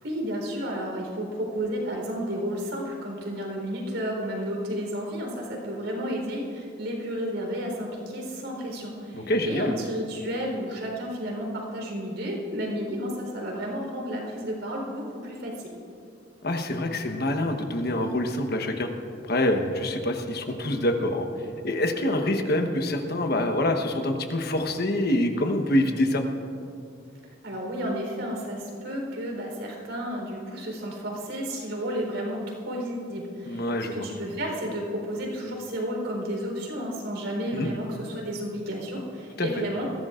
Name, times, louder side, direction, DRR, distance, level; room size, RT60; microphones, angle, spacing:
voice 1, 0.0-15.5 27.4-32.4 32.6-39.9, equal, 80° right, 0 dB, 4.0 m, -32 dB
voice 2, 9.1-9.7 16.4-18.9 19.3-21.3 21.6-26.2 33.5-34.0 37.5-37.7 39.4-39.5, left 1 dB, 55° left, 5 dB, 1.2 m, -26 dB
21.0 x 15.5 x 2.5 m, 2.4 s
head